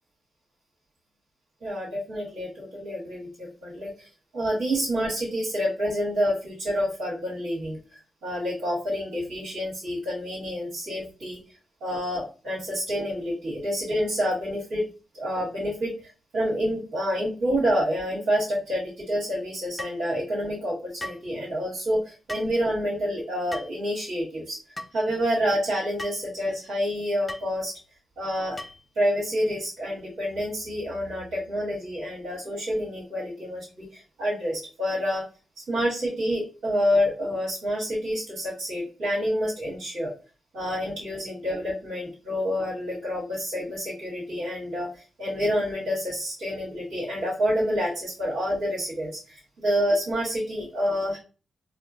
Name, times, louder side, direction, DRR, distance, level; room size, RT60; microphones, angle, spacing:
voice 1, 1.6-4.1 4.3-11.4 11.8-14.8 15.1-24.6 24.9-27.7 28.2-28.6 28.9-35.2 35.7-40.1 40.5-51.2, equal, 85° right, -7 dB, 1.5 m, -28 dB
sound 1, 19.8-20.0 21.0-21.3 22.3-22.5 23.5-23.8 24.8-24.9 26.0-26.2 27.3-27.5 28.6-28.9, left 1 dB, 15° left, 0.5 m, -37 dB
3.6 x 2.1 x 2.4 m, 0.34 s
cardioid pair, 60°, 0 cm